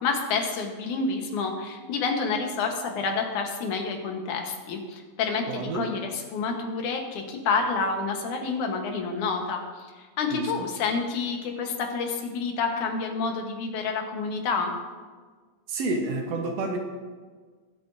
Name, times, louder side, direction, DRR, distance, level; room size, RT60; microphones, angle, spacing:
voice 1, 0.0-14.7, left 4 dB, 85° left, 3 dB, 2.6 m, -29 dB
voice 2, 5.5-5.9 10.3-10.5 15.7-16.8, right 3 dB, 65° right, 3 dB, 1.9 m, -29 dB
21.5 x 7.8 x 2.6 m, 1.5 s
omnidirectional pair, 3.4 m